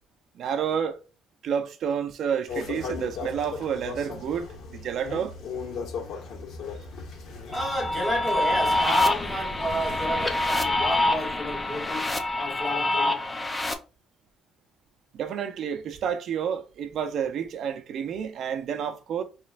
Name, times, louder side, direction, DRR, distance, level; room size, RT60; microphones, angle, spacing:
voice 1, 0.3-1.0 1.4-5.3 15.1-19.2, right 8 dB, 60° right, 0.8 m, -30 dB
sound 1, 2.5-11.0, left 4 dB, 70° left, 1.9 m, -38 dB
sound 2, 7.5-13.7, left 1 dB, 15° left, 0.7 m, -26 dB
voice 2, 7.5-13.3, equal, 5° right, 2.3 m, -31 dB
5.5 x 3.2 x 2.5 m
cardioid pair, 115°, 0 cm